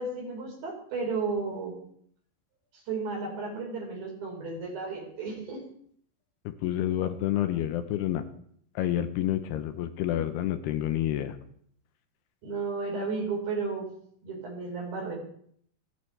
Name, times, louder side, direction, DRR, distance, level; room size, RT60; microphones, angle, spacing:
voice 1, 0.0-1.8 2.9-5.6 12.4-13.9 14.2-15.2, right 4 dB, 60° right, -1 dB, 6.3 m, -33 dB
voice 2, 6.5-8.2 8.8-11.4, left 12 dB, 80° left, 9 dB, 2.8 m, -29 dB
29.0 x 9.7 x 3.4 m, 0.63 s
omnidirectional pair, 4.9 m